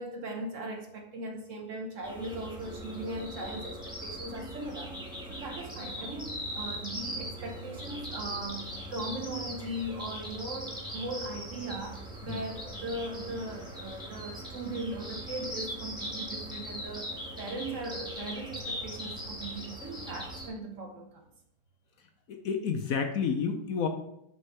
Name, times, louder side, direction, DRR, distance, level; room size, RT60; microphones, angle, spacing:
voice 1, 0.0-5.0 5.3-21.2, right 1 dB, 55° right, 3 dB, 1.2 m, -39 dB
sound 1, 2.0-20.5, equal, 5° right, 1.3 m, -40 dB
voice 2, 22.3-23.9, left 6 dB, 65° left, 6 dB, 1.0 m, -30 dB
6.3 x 5.4 x 4.5 m, 0.77 s
omnidirectional pair, 1.8 m